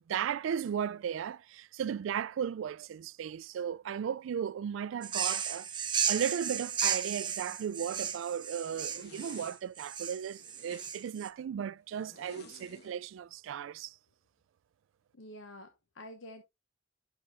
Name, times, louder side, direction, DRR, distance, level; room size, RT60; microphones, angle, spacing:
voice 1, 0.0-5.7 6.1-13.9, right 8 dB, 85° right, 0.3 m, -36 dB
sound 1, 5.0-11.3, right 8 dB, 25° right, 0.5 m, -34 dB
Zipper (clothing), 5.9-6.2 6.7-7.1 7.6-8.3 8.7-9.6 10.2-11.1 11.9-12.9, left 4 dB, 60° left, 1.0 m, -55 dB
voice 2, 15.1-16.4, left 1 dB, 90° left, 1.0 m, -48 dB
10.5 x 6.1 x 2.3 m
head